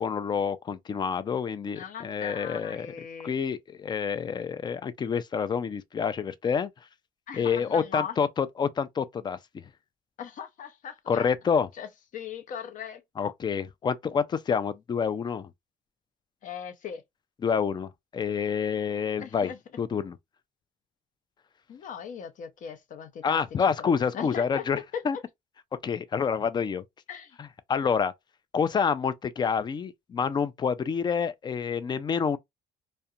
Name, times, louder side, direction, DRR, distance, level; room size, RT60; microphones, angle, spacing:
voice 1, 0.0-6.7 7.3-9.6 11.1-11.7 13.2-15.5 17.4-19.5 19.8-20.2 23.2-25.2 25.8-26.8 27.4-28.1 28.5-32.4, left 6 dB, 25° left, 0.3 m, -28 dB
voice 2, 1.7-3.3 7.3-8.1 10.2-11.3 11.8-11.9 12.1-13.0 16.4-17.0 19.2-19.6 21.7-23.4 23.8-24.7 24.9-25.2 27.1-27.4, left 8 dB, 50° left, 0.7 m, -38 dB
2.4 x 2.1 x 2.6 m
cardioid pair, 110°, 17 cm